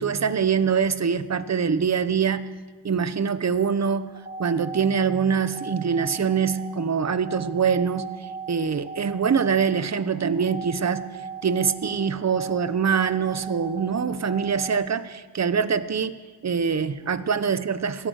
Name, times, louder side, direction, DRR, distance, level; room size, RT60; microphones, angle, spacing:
voice 1, 0.0-2.5 2.8-4.1 4.4-11.1 11.4-16.1 16.4-18.1, right 6 dB, 35° right, 13 dB, 0.9 m, -24 dB
sound 1, 4.1-14.7, right 4 dB, 15° right, 3.9 m, -39 dB
24.0 x 16.5 x 6.4 m, 1.5 s
wide cardioid pair, 120°, 45 cm